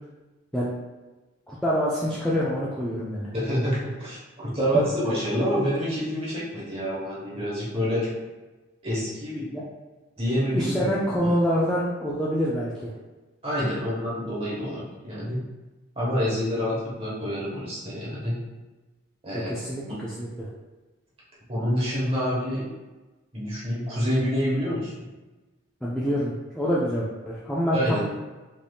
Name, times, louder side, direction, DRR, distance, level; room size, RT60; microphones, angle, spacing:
voice 1, 1.5-3.3 4.7-4.8 9.5-9.6 10.5-12.9 19.5-19.8 20.2-20.5 25.8-28.0, equal, 5° left, -8 dB, 0.3 m, -26 dB
voice 2, 3.3-8.1 8.8-9.5 10.2-10.9 11.2-11.3 13.4-15.4 15.9-18.4 19.2-19.5 19.8-20.0 21.5-22.6 23.3-25.0 27.7-28.0, equal, 30° right, -7 dB, 1.0 m, -27 dB
3.3 x 2.6 x 2.3 m, 1.2 s
head